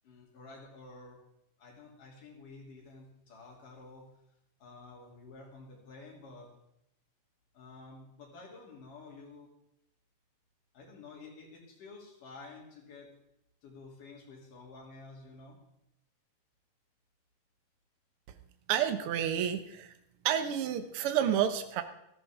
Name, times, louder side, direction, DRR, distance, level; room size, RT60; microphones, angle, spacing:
voice 1, 0.0-1.2 1.6-4.1 4.6-6.5 7.5-9.5 10.7-13.1 13.6-15.6, left 3 dB, 85° left, -2 dB, 4.6 m, -51 dB
voice 2, 18.7-19.9 20.2-21.8, right 9 dB, 65° right, 9 dB, 1.5 m, -30 dB
15.0 x 14.0 x 3.6 m, 0.79 s
omnidirectional pair, 3.6 m